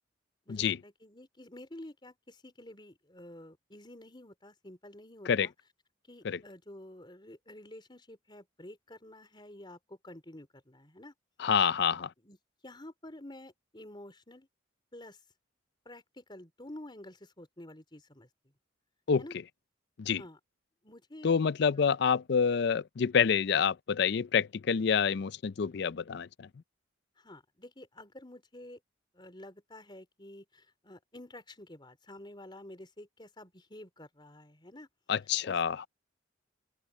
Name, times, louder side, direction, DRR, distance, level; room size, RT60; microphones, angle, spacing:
voice 1, 0.5-5.5 6.1-11.1 12.0-12.4 12.6-14.5 14.9-15.2 15.9-18.3 19.2-19.4 20.2-20.4 20.8-21.4 27.2-28.8 29.1-34.9 35.4-35.6, left 1 dB, 25° left, 4.0 m, -50 dB
voice 2, 11.4-12.1 19.1-19.2 20.0-20.2 21.2-26.5 35.1-35.9, left 6 dB, 60° left, 0.4 m, -27 dB
open air
head